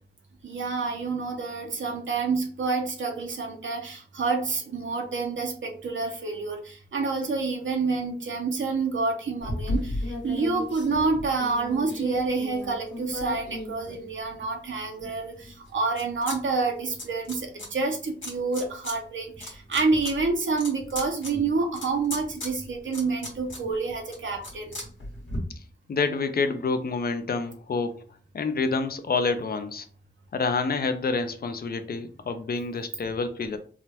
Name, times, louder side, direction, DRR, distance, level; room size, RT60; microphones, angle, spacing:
voice 1, 0.4-24.8, right 4 dB, 80° right, 2 dB, 0.6 m, -28 dB
sound 1, 9.4-14.5 15.0-16.4 16.6-17.7 18.2-19.0 19.3-25.4, left 1 dB, 90° left, 1.3 m, -36 dB
voice 2, 25.9-28.0 28.3-29.9 30.3-33.6, left 4 dB, 50° left, 9 dB, 0.4 m, -28 dB
3.6 x 2.1 x 2.8 m, 0.42 s
wide cardioid pair, 75°, 19 cm